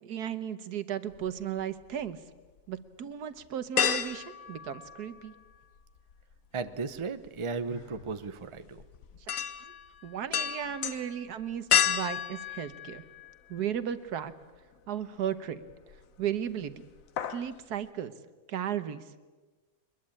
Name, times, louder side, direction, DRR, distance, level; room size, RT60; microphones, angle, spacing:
voice 1, 0.0-2.2 2.7-5.3 9.2-9.7 10.0-13.0 13.5-14.3 14.9-15.6 16.2-16.7 17.3-18.1 18.5-19.1, right 9 dB, 85° right, 12 dB, 1.6 m, -35 dB
sound 1, 1.1-2.1 2.6-2.7 3.8-5.5 5.8-13.7 14.1-14.2 15.6-16.2 16.5-16.7 17.0-17.5 17.8-17.9, left 8 dB, 60° left, 1.3 m, -32 dB
voice 2, 6.5-8.8, right 4 dB, 25° right, 11 dB, 0.7 m, -35 dB
Sigh, 7.6-8.2, left 3 dB, 90° left, 6.4 m, -47 dB
23.0 x 21.5 x 8.8 m, 1.3 s
omnidirectional pair, 1.6 m